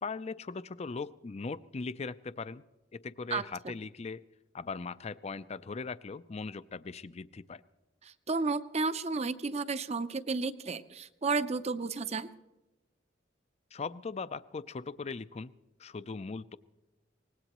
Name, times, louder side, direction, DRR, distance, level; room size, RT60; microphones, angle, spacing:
voice 1, 0.0-2.6 2.9-4.3 4.5-7.6 13.7-15.5 15.8-16.6, left 4 dB, 35° left, 16 dB, 0.4 m, -39 dB
voice 2, 8.0-12.3, right 4 dB, 35° right, 12 dB, 0.6 m, -32 dB
24.0 x 19.5 x 3.0 m, 1.1 s
head